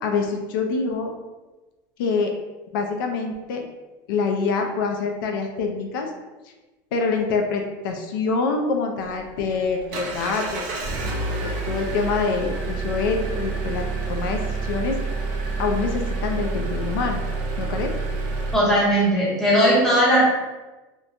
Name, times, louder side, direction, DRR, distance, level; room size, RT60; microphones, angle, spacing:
voice 1, 0.0-1.1 2.0-2.3 2.7-3.6 4.1-6.1 6.9-10.7 11.4-15.0 15.6-17.2 17.6-17.9, left 4 dB, 85° left, 3 dB, 0.4 m, -25 dB
Engine, 9.0-18.5, right 3 dB, 50° right, 0.6 m, -28 dB
voice 2, 18.5-20.2, equal, 5° left, -7 dB, 0.6 m, -18 dB
3.0 x 2.1 x 2.5 m, 1.1 s
supercardioid pair, 165°, 11 cm